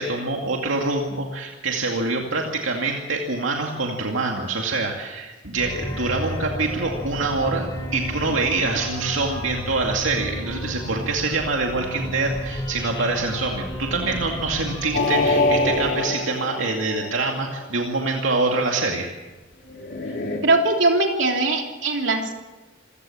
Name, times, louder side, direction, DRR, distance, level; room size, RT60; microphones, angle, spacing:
voice 1, 0.0-7.7 7.9-19.1, right 3 dB, 85° right, 1 dB, 2.4 m, -25 dB
sound 1, 5.6-15.9, equal, 20° left, 5.1 m, -32 dB
sound 2, 14.9-17.6 19.7-20.4, left 2 dB, 55° left, 3.3 m, -24 dB
voice 2, 20.4-22.3, right 2 dB, 70° right, 2 dB, 3.3 m, -21 dB
27.0 x 17.0 x 7.3 m, 1.2 s
head